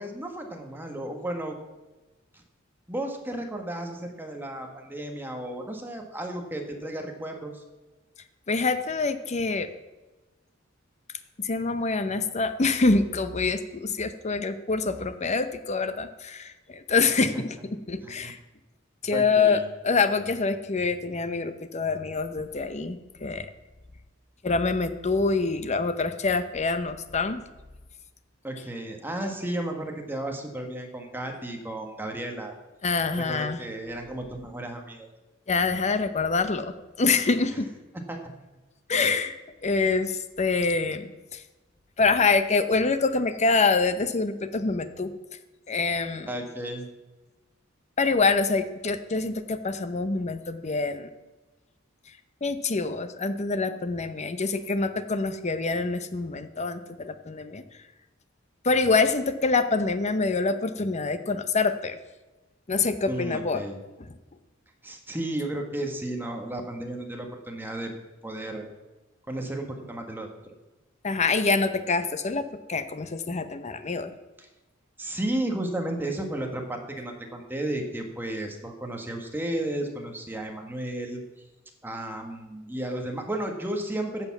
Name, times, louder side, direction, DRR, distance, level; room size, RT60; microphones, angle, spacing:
voice 1, 0.0-1.6 2.9-7.6 18.0-18.3 19.1-19.6 28.4-32.5 33.2-35.1 38.1-38.3 46.3-46.9 63.1-63.8 64.8-67.9 68.2-68.7 69.3-70.3 74.4-74.5 75.0-81.2 81.8-84.2, right 1 dB, 10° right, 3 dB, 1.4 m, -33 dB
voice 2, 8.5-9.7 11.4-17.5 17.9-18.4 19.0-23.5 24.4-27.4 32.8-33.6 35.5-37.7 38.9-39.4 39.6-41.4 42.0-45.1 45.7-46.3 48.0-51.1 52.4-57.6 58.6-62.0 62.7-63.6 71.0-74.1, left 4 dB, 35° left, 11 dB, 0.7 m, -26 dB
10.5 x 7.0 x 7.1 m, 1.1 s
head